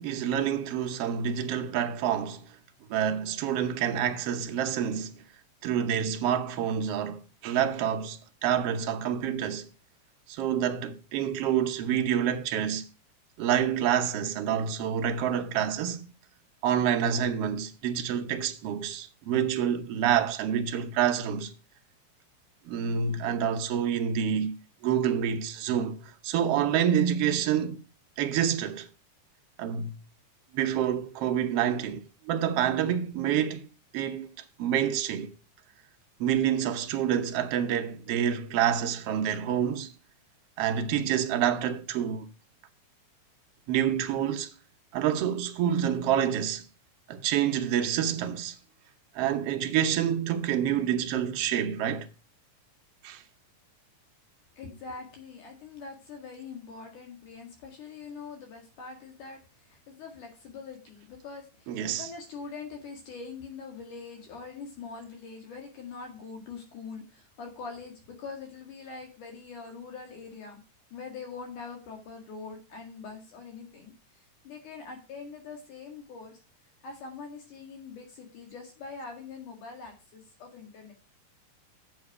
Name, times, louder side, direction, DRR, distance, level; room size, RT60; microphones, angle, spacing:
voice 1, 0.0-2.4 2.9-5.2 5.6-9.6 10.3-12.8 13.4-16.0 16.6-21.5 22.7-24.5 24.8-26.0 26.2-27.8 28.2-28.9 29.6-30.0 30.5-33.7 33.9-34.3 34.6-35.3 36.2-39.9 40.6-42.3 43.7-44.5 44.9-46.6 47.1-48.5 49.2-52.1 53.0-53.2 61.7-62.1, right 9 dB, 75° right, 1.4 m, -27 dB
voice 2, 54.6-70.6 70.9-73.9 74.4-76.4 76.8-80.9, left 4 dB, 70° left, 3.4 m, -43 dB
7.9 x 7.2 x 4.8 m
omnidirectional pair, 3.8 m